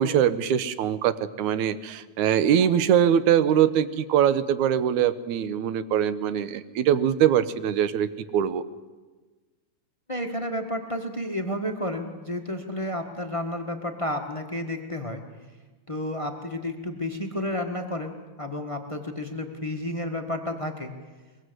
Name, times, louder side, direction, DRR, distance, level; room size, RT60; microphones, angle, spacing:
voice 1, 0.0-8.6, right 9 dB, 80° right, 13 dB, 2.3 m, -22 dB
voice 2, 10.1-15.2 15.9-20.9, left 1 dB, 30° left, 4 dB, 0.5 m, -31 dB
23.0 x 22.5 x 8.0 m, 1.3 s
omnidirectional pair, 3.5 m